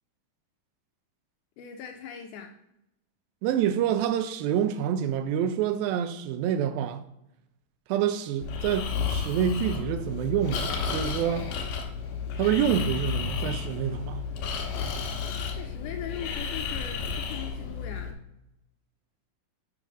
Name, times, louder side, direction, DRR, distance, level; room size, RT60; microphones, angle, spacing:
voice 1, 1.6-2.6 15.6-18.2, left 8 dB, 90° left, 1.8 m, -40 dB
voice 2, 3.4-7.0 7.9-11.5 12.4-14.2, right 9 dB, 80° right, 2.4 m, -27 dB
Breathing, 8.4-18.1, left 6 dB, 70° left, 2.5 m, -32 dB
7.2 x 3.8 x 6.0 m
omnidirectional pair, 4.3 m